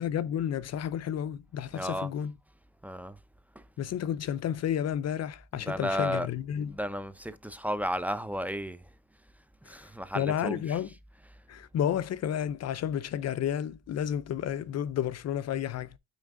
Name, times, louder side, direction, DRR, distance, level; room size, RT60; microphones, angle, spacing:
voice 1, 0.0-2.3 3.8-6.8 9.7-9.8 10.1-10.9 11.5-16.0, left 9 dB, 55° left, 0.6 m, -31 dB
voice 2, 1.7-2.1 2.8-3.2 3.5-3.6 5.5-6.3 6.7-8.8 9.6-10.6, equal, 5° right, 0.8 m, -33 dB
9.1 x 3.4 x 3.7 m
cardioid pair, 90°, 30 cm